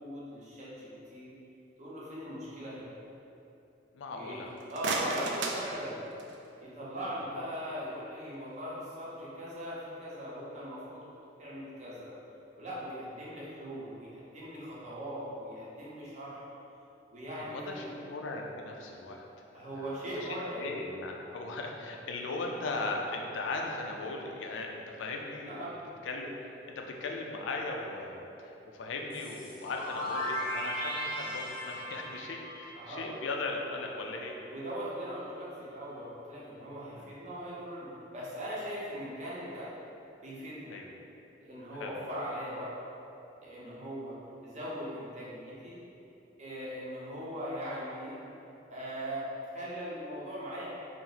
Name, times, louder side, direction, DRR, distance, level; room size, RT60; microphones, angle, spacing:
voice 1, 0.0-1.3 1.8-2.9 4.1-4.4 4.7-6.0 6.6-11.0 11.4-12.2 12.6-16.5 17.1-17.9 19.5-20.6 25.5-25.7 32.8-33.1 34.0-34.1 34.5-39.7 40.2-40.7 41.4-42.7 43.4-44.2 44.4-45.8 46.4-48.2 48.7-50.7, equal, 40° right, -7 dB, 0.7 m, -40 dB
voice 2, 3.9-4.5 17.4-19.2 19.5-25.7 26.0-26.3 26.7-34.4 37.0-37.1 40.7-40.9 41.8-42.0, left 3 dB, 85° left, 1 dB, 0.4 m, -38 dB
sound 1, 4.4-6.5, right 3 dB, 75° right, 0.3 m, -35 dB
sound 2, 29.1-33.8, equal, 30° left, 0.6 m, -37 dB
2.8 x 2.0 x 3.8 m, 2.9 s
head